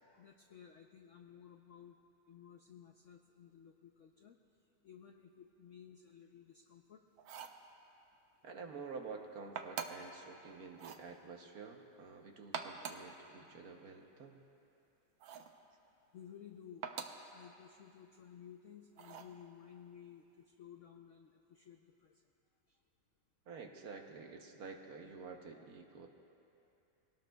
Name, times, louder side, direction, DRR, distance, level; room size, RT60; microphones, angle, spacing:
voice 1, 0.0-2.0 2.3-4.4 4.8-7.0 16.1-16.8 17.3-22.1, left 8 dB, 85° left, 4 dB, 0.6 m, -56 dB
sound 1, 7.2-7.6 9.6-10.1 10.7-11.1 12.4-13.1 15.2-15.6 16.8-17.3 19.0-19.4, right 7 dB, 85° right, 1.5 m, -44 dB
voice 2, 8.4-14.4 23.5-26.1, right 4 dB, 60° right, 3 dB, 1.3 m, -49 dB
23.5 x 18.0 x 2.3 m, 2.8 s
omnidirectional pair, 2.0 m